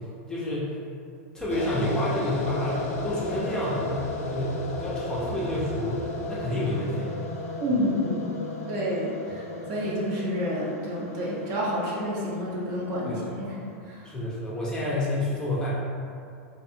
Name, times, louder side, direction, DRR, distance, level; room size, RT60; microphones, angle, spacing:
voice 1, 0.3-0.8 1.3-7.1 13.1-13.2 14.0-15.8, left 1 dB, 10° left, -8 dB, 0.5 m, -29 dB
sound 1, 1.4-6.5, right 2 dB, 85° right, 1.2 m, -44 dB
sound 2, 1.5-13.8, left 2 dB, 85° left, 0.4 m, -35 dB
voice 2, 7.6-8.4 8.7-13.6 13.8-14.1, equal, 45° right, -5 dB, 0.7 m, -29 dB
2.6 x 2.3 x 2.7 m, 2.4 s
supercardioid pair, 130°, 8 cm